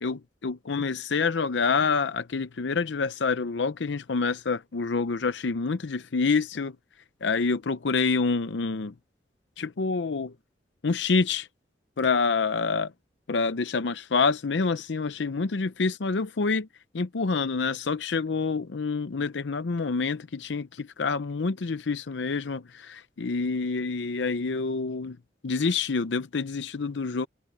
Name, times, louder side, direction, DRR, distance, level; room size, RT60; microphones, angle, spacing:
voice 1, 0.0-6.8 7.2-8.9 9.6-10.3 10.8-11.5 12.0-12.9 13.3-16.7 16.9-25.2 25.4-27.3, left 4 dB, 80° left, 0.6 m, -27 dB
head